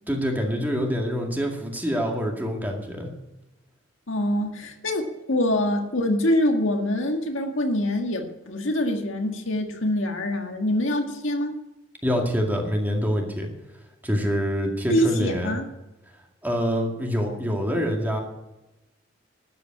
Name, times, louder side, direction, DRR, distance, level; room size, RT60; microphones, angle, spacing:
voice 1, 0.1-3.1 12.0-13.5 14.0-15.6 16.4-18.2, equal, 10° right, 1 dB, 2.0 m, -25 dB
voice 2, 4.1-11.6 14.9-15.7, left 1 dB, 75° left, 4 dB, 1.8 m, -25 dB
12.5 x 8.6 x 8.7 m, 0.98 s
head